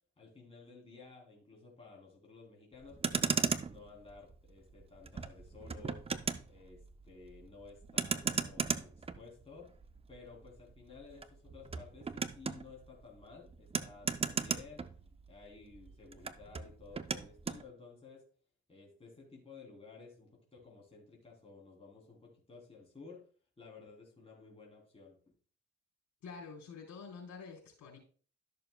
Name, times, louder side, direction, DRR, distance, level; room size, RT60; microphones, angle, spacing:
voice 1, 0.2-3.3 3.7-6.0 6.4-6.8 7.1-9.7 10.1-14.8 15.3-18.3 18.7-23.2 23.6-25.2, left 4 dB, 20° left, -3 dB, 3.2 m, -54 dB
Motor vehicle (road), 2.8-15.5 15.7-17.6, right 5 dB, 20° right, 0.5 m, -37 dB
voice 2, 26.2-28.0, left 5 dB, 70° left, 0 dB, 4.0 m, -48 dB
13.0 x 6.8 x 2.2 m, 0.42 s
cardioid pair, 90°, 30 cm